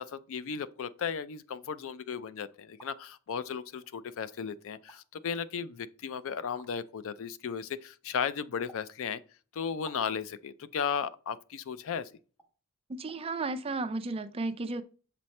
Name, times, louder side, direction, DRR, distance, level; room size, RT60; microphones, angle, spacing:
voice 1, 0.0-9.2 9.5-12.1, left 7 dB, 65° left, 0.4 m, -35 dB
Pops with mouth, 2.5-2.9 3.8-3.9 4.7-5.0 6.6-6.7 8.7-8.9 9.9-10.1 10.9-11.1 12.4-12.5 13.1-13.2 13.5-13.6, right 2 dB, 10° left, 1.4 m, -53 dB
voice 2, 12.9-14.8, right 3 dB, 25° right, 0.4 m, -33 dB
7.1 x 4.2 x 3.2 m
head